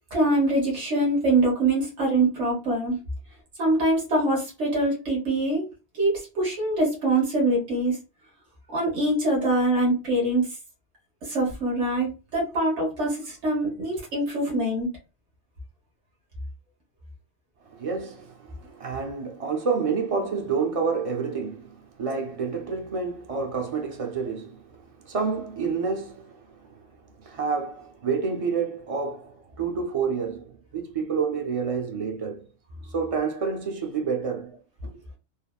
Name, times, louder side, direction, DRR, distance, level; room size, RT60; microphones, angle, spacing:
voice 1, 0.1-3.0 3.6-5.6 5.9-8.0 8.7-10.5 11.2-14.9, right 2 dB, 85° right, 1.5 m, -24 dB
voice 2, 17.7-26.8 27.2-32.5 32.9-34.6 34.8-34.9, right 5 dB, 40° right, 0.6 m, -29 dB
3.4 x 2.1 x 2.3 m
omnidirectional pair, 1.1 m